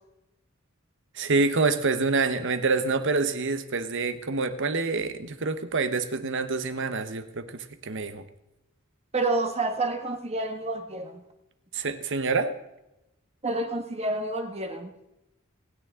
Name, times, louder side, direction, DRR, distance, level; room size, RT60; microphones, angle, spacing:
voice 1, 1.1-8.2 11.7-12.5, right 4 dB, 60° right, 10 dB, 1.1 m, -27 dB
voice 2, 9.1-11.2 13.4-14.9, right 2 dB, 30° right, 6 dB, 1.5 m, -29 dB
27.0 x 9.6 x 3.7 m, 0.92 s
head